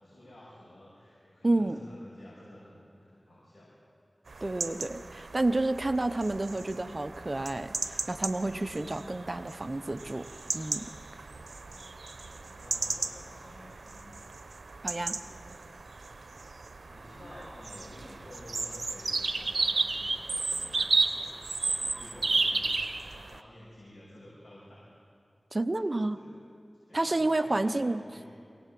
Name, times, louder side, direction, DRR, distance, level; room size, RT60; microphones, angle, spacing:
voice 1, 0.0-3.7 11.3-14.2 15.0-15.4 16.8-22.8 23.0-24.9 25.7-26.3 26.8-27.8 28.1-28.3, left 1 dB, 70° left, -7 dB, 6.6 m, -51 dB
voice 2, 1.4-1.8 4.4-10.3 10.5-10.9 14.8-15.1 25.5-26.2 26.9-28.0, right 2 dB, 40° right, 11 dB, 0.8 m, -30 dB
sound 1, 4.3-23.4, right 3 dB, 85° right, 0.8 m, -34 dB
23.5 x 17.5 x 7.6 m, 2.5 s
wide cardioid pair, 55°, 0 cm